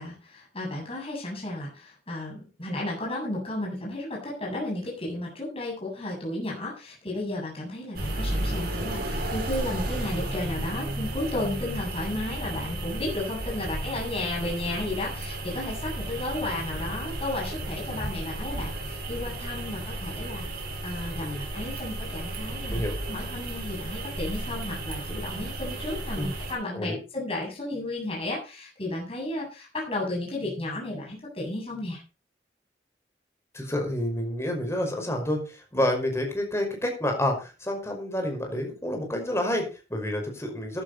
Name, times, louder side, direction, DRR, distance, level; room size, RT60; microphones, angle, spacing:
voice 1, 0.0-22.8 23.1-32.0, left 1 dB, 35° left, -3 dB, 7.9 m, -33 dB
sound 1, 7.9-26.5, right 1 dB, 60° right, 5.2 m, -33 dB
voice 2, 33.5-40.8, left 1 dB, 15° left, 3 dB, 5.4 m, -29 dB
15.0 x 11.5 x 4.3 m, 0.33 s
head